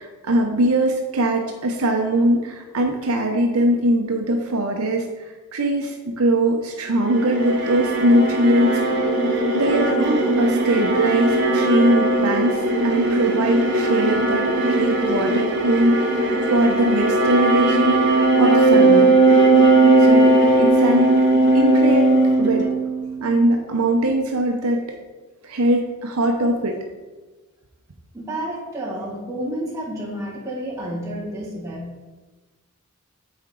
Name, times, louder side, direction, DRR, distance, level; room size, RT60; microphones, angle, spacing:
voice 1, 0.0-9.1 9.5-14.5 14.8-19.2 20.0-21.1 21.5-22.1 22.4-22.7 23.2-24.8 25.4-26.8, right 1 dB, 85° right, 2 dB, 0.7 m, -21 dB
sound 1, 7.0-23.3, right 2 dB, 50° right, 1.0 m, -18 dB
voice 2, 28.1-31.9, right 1 dB, 15° right, -6 dB, 1.8 m, -30 dB
8.4 x 4.4 x 3.8 m, 1.2 s
head